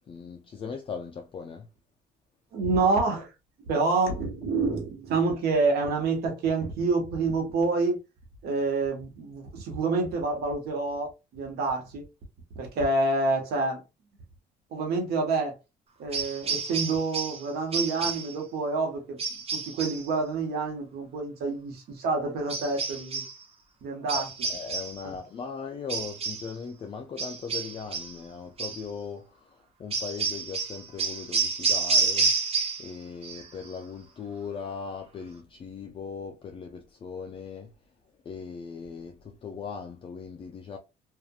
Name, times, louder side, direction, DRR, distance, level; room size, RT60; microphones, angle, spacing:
voice 1, 0.1-1.7 24.1-24.2 24.5-32.3 32.8-37.7 38.3-40.8, left 5 dB, 30° left, 0.4 m, -39 dB
voice 2, 2.5-3.3 3.7-8.0 8.4-12.1 12.5-13.8 14.7-15.5 16.0-19.2 19.5-23.2 23.8-24.3 25.0-25.1, right 3 dB, 70° right, 1.1 m, -27 dB
sound 1, 16.1-17.4 17.7-18.3 19.2-20.1 22.5-23.4 24.1-25.0 25.9-26.5 27.2-28.2 28.6-28.8 29.9-32.9 33.2-33.7, right 4 dB, 35° right, 0.7 m, -29 dB
2.8 x 2.4 x 2.3 m
cardioid pair, 110°, 17 cm